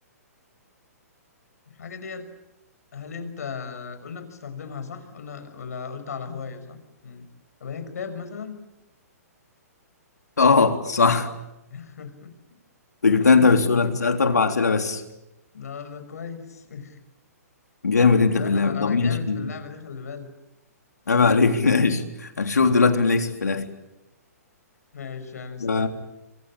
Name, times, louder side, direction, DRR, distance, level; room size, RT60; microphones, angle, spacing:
voice 1, 1.7-2.3 2.9-7.3 7.6-8.6 11.7-12.3 13.0-14.0 15.5-17.0 18.1-20.3 24.9-25.9, left 6 dB, 70° left, 10 dB, 6.0 m, -37 dB
voice 2, 10.4-11.3 13.0-15.0 17.8-19.5 21.1-23.7 25.6-25.9, left 4 dB, 85° left, 6 dB, 3.6 m, -20 dB
28.0 x 24.5 x 8.7 m, 0.94 s
hypercardioid pair, 130°, 9 cm